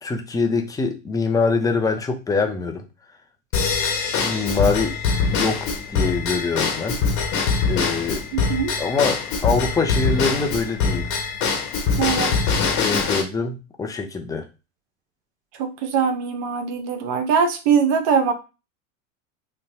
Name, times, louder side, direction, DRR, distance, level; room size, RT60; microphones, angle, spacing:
voice 1, 0.0-2.8 4.2-5.0 5.3-5.7 5.9-7.0 7.7-8.2 8.8-11.1 12.8-14.5, left 4 dB, 10° left, 4 dB, 0.6 m, -24 dB
Drum kit / Drum / Bell, 3.5-13.2, left 5 dB, 50° left, 1.2 m, -23 dB
voice 2, 8.3-8.8 12.0-12.4 15.5-18.3, right 6 dB, 50° right, 6 dB, 0.7 m, -22 dB
3.8 x 2.2 x 2.6 m, 0.30 s
hypercardioid pair, 95°, 39 cm